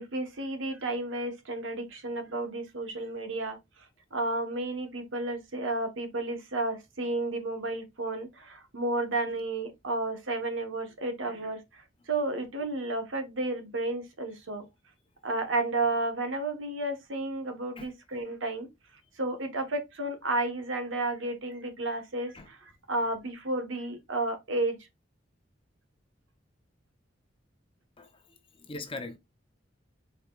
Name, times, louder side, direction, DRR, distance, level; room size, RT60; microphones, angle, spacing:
voice 1, 0.0-3.6 4.1-14.6 15.2-18.7 19.2-24.8, right 2 dB, 80° right, 1.1 m, -32 dB
voice 2, 28.0-29.2, left 2 dB, 30° left, 0.8 m, -41 dB
4.9 x 4.4 x 2.3 m
head